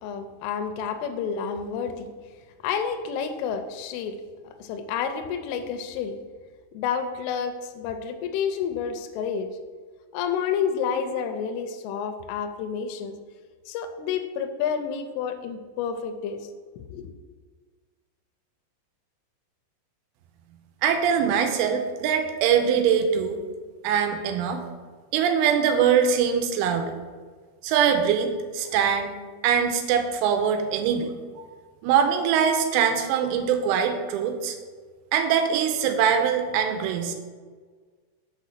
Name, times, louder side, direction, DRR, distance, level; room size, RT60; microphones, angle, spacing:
voice 1, 0.0-2.1 2.6-4.2 4.6-6.2 6.7-9.5 10.1-13.2 13.7-16.5 16.8-17.1, left 7 dB, 85° left, 7 dB, 3.0 m, -29 dB
voice 2, 20.8-23.4 23.8-24.6 25.1-26.9 27.6-29.2 29.4-31.1 31.8-34.6 35.1-37.1, right 7 dB, 85° right, 6 dB, 3.2 m, -22 dB
7.4 x 4.2 x 6.6 m, 1.5 s
omnidirectional pair, 5.6 m